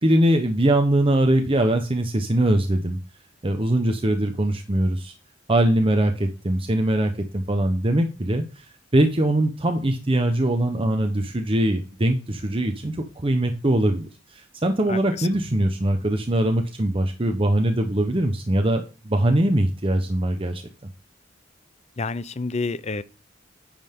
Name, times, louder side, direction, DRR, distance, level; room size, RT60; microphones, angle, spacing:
voice 1, 0.0-3.0 3.4-5.1 5.5-8.7 8.9-20.6, right 1 dB, 30° right, 0.9 m, -22 dB
voice 2, 14.9-15.3 22.0-23.0, left 3 dB, 35° left, 0.6 m, -29 dB
10.0 x 5.5 x 3.7 m
head